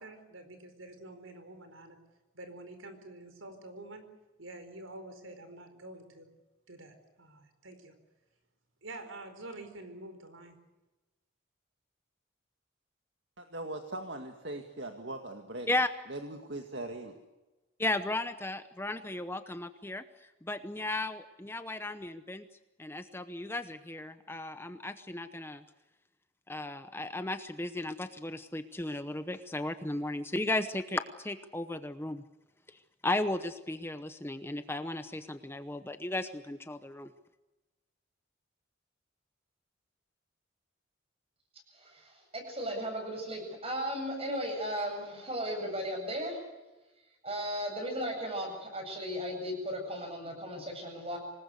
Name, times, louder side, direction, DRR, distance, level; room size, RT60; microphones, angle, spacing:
voice 1, 0.0-2.0 2.3-4.0 4.4-6.3 6.7-7.9 8.8-10.6, right 2 dB, 80° right, 8 dB, 4.6 m, -47 dB
voice 2, 13.4-15.7 16.1-17.1, right 2 dB, 60° right, 4 dB, 2.1 m, -40 dB
voice 3, 17.8-20.0 20.4-22.4 22.8-25.6 26.5-32.2 33.0-37.1, left 2 dB, 10° left, 10 dB, 0.8 m, -35 dB
voice 4, 41.7-46.4 47.2-51.2, equal, 30° right, 3 dB, 7.9 m, -36 dB
26.0 x 20.0 x 8.2 m, 1.1 s
head